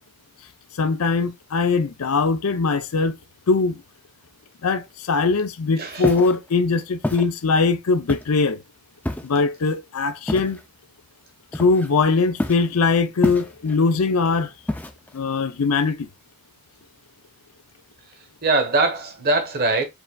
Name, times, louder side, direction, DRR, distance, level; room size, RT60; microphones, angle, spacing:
voice 1, 0.8-3.2 3.5-3.8 4.6-8.6 9.2-10.6 11.5-14.5 15.1-16.1, left 4 dB, 80° left, 0.6 m, -21 dB
voice 2, 5.8-6.1 18.4-19.8, right 3 dB, 45° right, 1.1 m, -21 dB
Walk footsteps, 6.0-6.4 7.0-7.3 8.1-8.4 9.0-9.4 10.3-10.6 11.5-12.0 12.4-12.7 13.2-13.8 14.7-15.2, left 1 dB, 10° left, 0.4 m, -27 dB
4.8 x 3.3 x 2.3 m
head